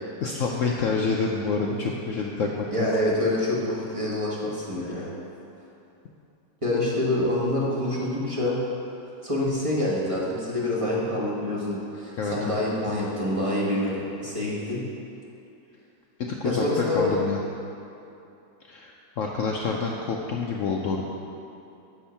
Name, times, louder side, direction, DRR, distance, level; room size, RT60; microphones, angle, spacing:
voice 1, 0.2-2.9 5.0-5.1 12.2-12.6 16.3-17.4 18.7-21.0, left 4 dB, 85° left, -1 dB, 0.7 m, -28 dB
voice 2, 2.7-5.1 6.6-8.6 9.2-14.8 16.4-17.2, left 1 dB, 20° right, -6 dB, 1.2 m, -26 dB
10.0 x 3.6 x 6.9 m, 2.8 s
omnidirectional pair, 2.0 m